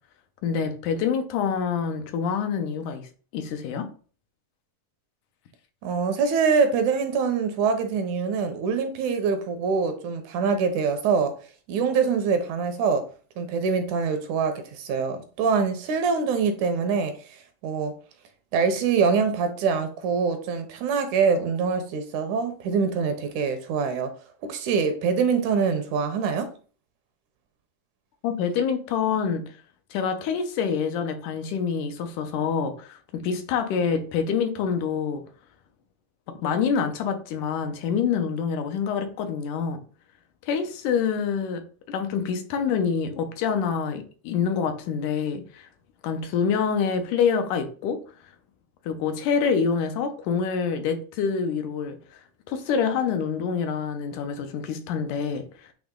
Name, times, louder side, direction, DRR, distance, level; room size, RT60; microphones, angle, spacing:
voice 1, 0.4-3.0 3.3-3.9 28.2-29.4 29.9-35.2 36.3-39.8 40.5-41.6 41.9-45.7 46.0-48.0 48.9-52.0 52.5-55.7, left 6 dB, 80° left, 2.3 m, -26 dB
voice 2, 5.8-11.3 11.7-13.0 13.4-17.1 17.6-17.9 18.5-24.1 24.4-26.5, right 5 dB, 75° right, 2.1 m, -24 dB
8.9 x 3.0 x 3.7 m
omnidirectional pair, 3.6 m